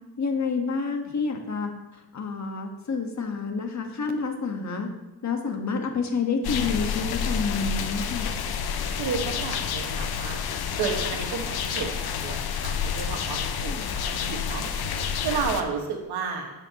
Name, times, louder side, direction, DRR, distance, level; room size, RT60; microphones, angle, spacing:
voice 1, 0.2-4.9 5.2-8.3 13.7-14.0, left 4 dB, 45° left, 4 dB, 1.4 m, -29 dB
sound 1, 6.4-15.6, left 7 dB, 75° left, 0.8 m, -29 dB
voice 2, 8.9-10.4 10.7-14.6 15.2-16.5, right 6 dB, 85° right, 2 dB, 1.7 m, -32 dB
11.5 x 8.2 x 3.0 m, 1.1 s
cardioid pair, 95°, 38 cm